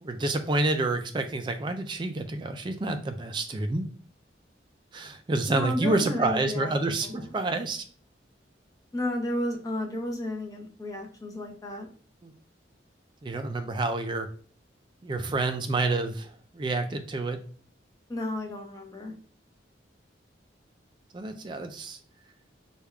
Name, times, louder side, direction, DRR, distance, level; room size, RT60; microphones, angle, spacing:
voice 1, 0.0-3.9 4.9-7.8 12.2-12.3 13.2-14.3 15.0-17.4 21.1-22.0, right 2 dB, 25° right, 7 dB, 0.3 m, -28 dB
voice 2, 5.5-7.3 8.9-11.9 18.1-19.1, left 1 dB, 20° left, 1 dB, 0.6 m, -33 dB
3.3 x 2.3 x 3.2 m, 0.43 s
head